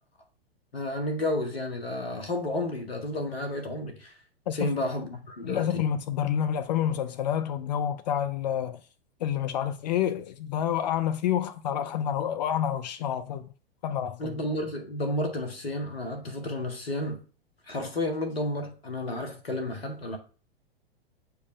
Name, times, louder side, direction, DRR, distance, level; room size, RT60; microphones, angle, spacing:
voice 1, 0.7-4.1 4.5-5.8 14.2-17.2 17.7-20.2, left 1 dB, 75° left, 1.7 m, -31 dB
voice 2, 5.5-8.8 9.2-13.5 13.8-14.4, left 9 dB, 45° left, 0.5 m, -28 dB
8.2 x 4.6 x 3.2 m
figure-of-eight pair, 100°, 31 cm